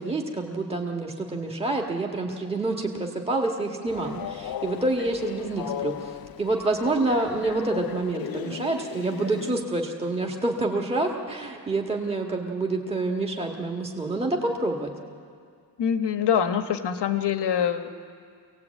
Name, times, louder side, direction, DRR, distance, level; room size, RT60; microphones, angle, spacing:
voice 1, 0.0-14.9, right 2 dB, 15° right, 0 dB, 1.6 m, -27 dB
Train, 3.9-9.6, left 10 dB, 60° left, 0.6 m, -36 dB
voice 2, 15.8-17.9, left 8 dB, 75° left, 7 dB, 1.3 m, -24 dB
25.0 x 18.0 x 8.4 m, 2.2 s
wide cardioid pair, 170°, 41 cm